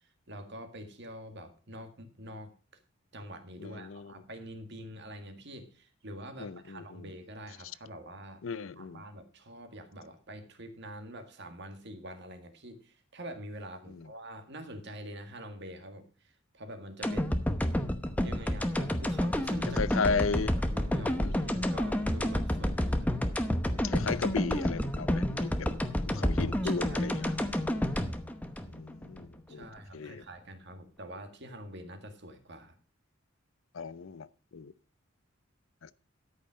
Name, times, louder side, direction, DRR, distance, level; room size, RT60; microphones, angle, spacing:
voice 1, 0.0-2.5 3.1-8.4 8.8-17.4 18.2-20.0 20.4-23.1 26.6-27.3 29.5-32.8, right 1 dB, 55° right, 1.9 m, -46 dB
voice 2, 3.6-4.1 6.4-7.1 8.4-9.0 13.9-14.1 17.0-17.2 19.7-20.5 21.2-21.4 23.8-25.7 26.1-27.3 28.7-30.2 33.7-34.3 34.5-34.7 35.8-35.9, left 5 dB, 70° left, 0.6 m, -35 dB
sound 1, 17.0-29.3 29.6-29.7, equal, 5° left, 0.9 m, -30 dB
13.0 x 5.6 x 6.2 m
head